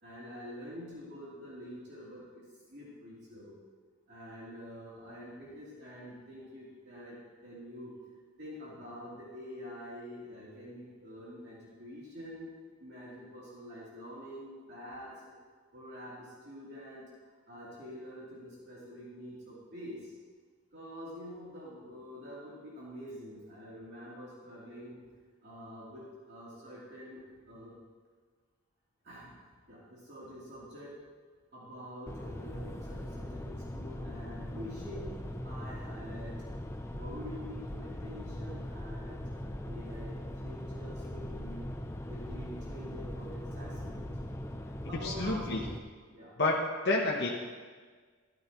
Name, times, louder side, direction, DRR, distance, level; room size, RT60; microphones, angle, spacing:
voice 1, 0.0-3.6 4.1-8.0 8.4-12.5 12.8-15.3 15.7-20.1 20.7-25.0 25.4-27.7 29.0-29.4 29.7-30.9 31.5-36.4 36.9-40.2 40.4-41.7 42.1-44.3 44.8-45.5 46.1-46.3, equal, 50° right, -8 dB, 3.2 m, -46 dB
sound 1, 32.1-45.8, left 1 dB, 10° left, 0.5 m, -40 dB
voice 2, 45.0-45.6 46.4-47.3, left 2 dB, 50° left, -3 dB, 1.0 m, -29 dB
14.0 x 12.0 x 3.0 m, 1.5 s
head